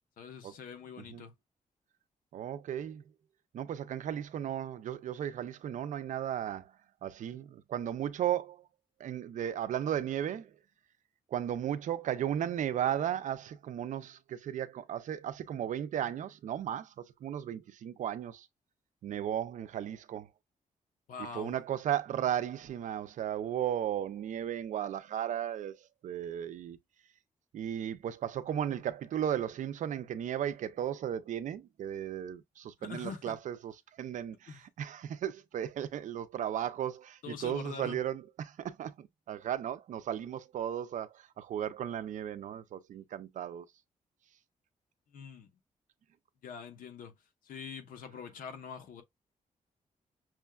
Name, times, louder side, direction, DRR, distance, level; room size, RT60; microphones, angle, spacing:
voice 1, 0.2-1.3 21.1-21.6 32.8-33.4 34.5-34.6 37.2-38.0 45.1-45.5 46.4-49.0, left 6 dB, 85° left, 0.8 m, -44 dB
voice 2, 2.3-3.0 3.5-6.7 7.0-8.7 9.0-10.5 11.3-18.5 19.0-20.3 21.3-26.8 27.5-33.7 34.0-43.7, right 10 dB, 65° right, 0.5 m, -35 dB
6.0 x 2.2 x 2.3 m
wide cardioid pair, 145°, 14 cm